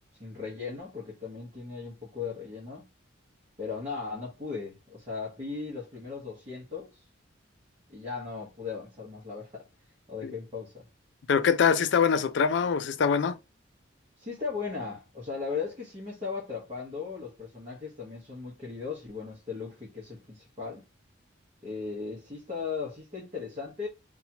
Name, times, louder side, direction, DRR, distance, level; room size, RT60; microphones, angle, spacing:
voice 1, 0.2-2.9 3.6-7.0 7.9-9.7 10.1-10.9 14.2-20.8 21.6-23.9, left 5 dB, 30° right, 0.9 m, -37 dB
voice 2, 11.3-13.4, left 6 dB, 60° left, 0.3 m, -24 dB
2.8 x 2.3 x 2.8 m
head